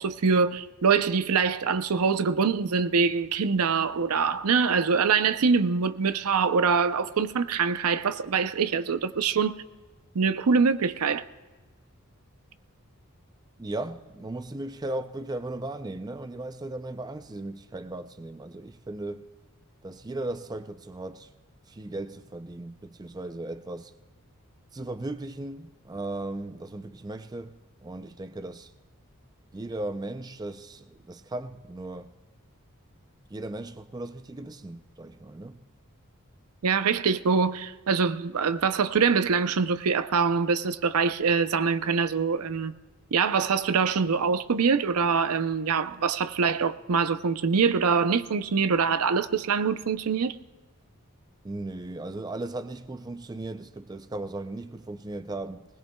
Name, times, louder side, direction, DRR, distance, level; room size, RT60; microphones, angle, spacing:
voice 1, 0.0-9.6 10.1-11.2 36.6-42.8 43.1-50.4, right 5 dB, 80° right, 0.6 m, -24 dB
voice 2, 13.6-19.3 19.8-21.3 21.7-23.9 24.7-28.7 29.5-32.1 33.3-35.6 51.4-55.7, right 2 dB, 15° right, 0.4 m, -37 dB
20.0 x 20.0 x 2.2 m
head